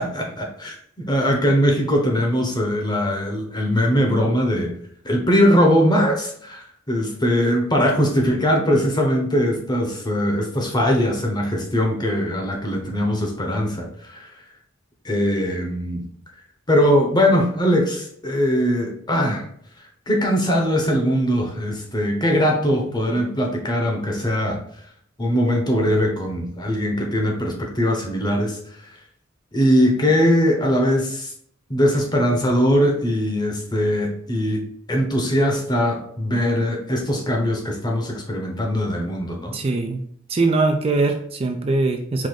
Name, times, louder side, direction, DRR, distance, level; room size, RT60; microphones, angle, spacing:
voice 1, 0.0-4.8 5.0-14.3 15.0-16.0 16.7-19.5 20.1-24.6 25.2-28.6 29.5-31.3 31.7-39.6, equal, 20° left, 1 dB, 0.9 m, -21 dB
voice 2, 39.5-40.0 40.3-42.3, right 3 dB, 30° right, 4 dB, 0.4 m, -21 dB
4.8 x 2.5 x 4.0 m, 0.64 s
head